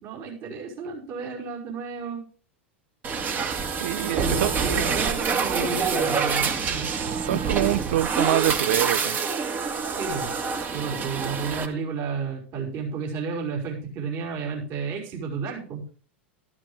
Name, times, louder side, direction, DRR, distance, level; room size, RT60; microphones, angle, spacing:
voice 1, 0.0-2.2 4.1-6.9 9.9-10.3 10.7-15.8, right 5 dB, 45° right, 5.5 m, -32 dB
sound 1, 3.0-11.7, right 5 dB, 30° right, 2.2 m, -26 dB
voice 2, 3.8-4.8 6.7-6.9 7.3-9.2, right 14 dB, 65° right, 0.6 m, -26 dB
13.5 x 12.5 x 3.5 m
figure-of-eight pair, 90°, 6 cm